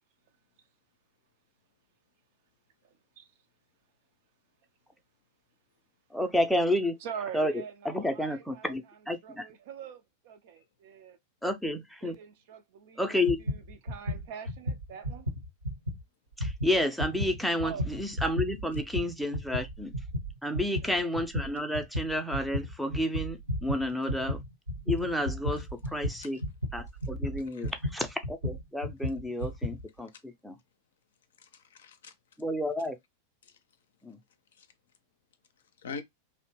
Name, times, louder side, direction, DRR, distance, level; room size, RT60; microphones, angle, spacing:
voice 1, 2.8-3.3 7.0-11.2 12.0-15.3 17.6-18.0 20.5-20.9, right 7 dB, 50° right, 0.4 m, -44 dB
voice 2, 6.1-6.9 7.3-9.5 11.4-12.2 13.0-13.4 16.4-19.9 20.4-24.4 24.9-26.4 26.7-30.6 32.4-32.9 34.0-34.2, left 1 dB, ahead, 0.5 m, -31 dB
sound 1, 13.3-16.0 16.3-29.8, left 1 dB, 80° right, 1.0 m, -34 dB
voice 3, 31.4-32.2 33.4-33.6 34.5-34.7 35.8-36.0, left 5 dB, 60° left, 0.5 m, -44 dB
2.7 x 2.0 x 3.0 m
figure-of-eight pair, 90°, 0 cm